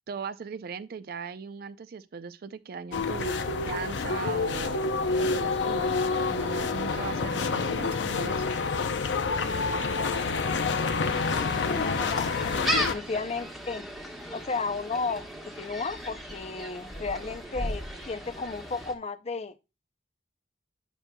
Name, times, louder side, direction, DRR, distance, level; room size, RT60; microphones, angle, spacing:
voice 1, 0.1-4.8 5.2-6.0 6.3-8.5, right 5 dB, 55° right, 0.4 m, -38 dB
sound 1, 2.9-13.0, left 4 dB, 85° left, 0.6 m, -28 dB
Gull seagull, 11.1-18.9, equal, ahead, 1.1 m, -36 dB
voice 2, 11.7-13.9 14.3-19.6, left 4 dB, 35° left, 0.5 m, -34 dB
9.1 x 6.2 x 2.2 m
head